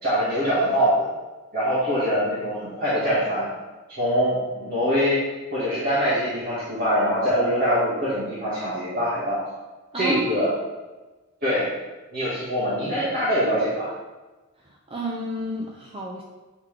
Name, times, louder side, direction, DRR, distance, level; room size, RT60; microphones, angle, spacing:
voice 1, 0.0-1.1 1.5-3.5 3.9-5.2 5.5-9.4 10.0-10.5 11.4-11.7 12.1-13.9, equal, 45° right, -10 dB, 1.7 m, -23 dB
voice 2, 9.9-10.5 14.6-16.2, right 1 dB, 25° right, -1 dB, 0.5 m, -32 dB
8.1 x 3.5 x 3.3 m, 1.2 s
head